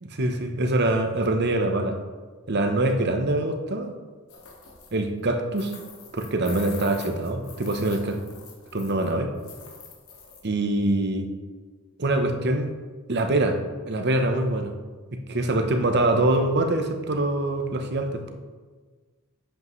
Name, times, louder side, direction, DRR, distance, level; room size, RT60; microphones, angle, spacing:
voice 1, 0.0-2.0 2.5-3.9 4.9-5.7 6.1-8.2 8.7-9.3 10.4-11.3 12.0-12.7 13.1-14.7 15.3-18.3, right 2 dB, 50° right, 5 dB, 0.9 m, -24 dB
sound 1, 4.3-5.0 5.5-9.1 9.4-10.4, left 5 dB, 70° left, 1.8 m, -45 dB
10.5 x 8.2 x 3.2 m, 1.4 s
head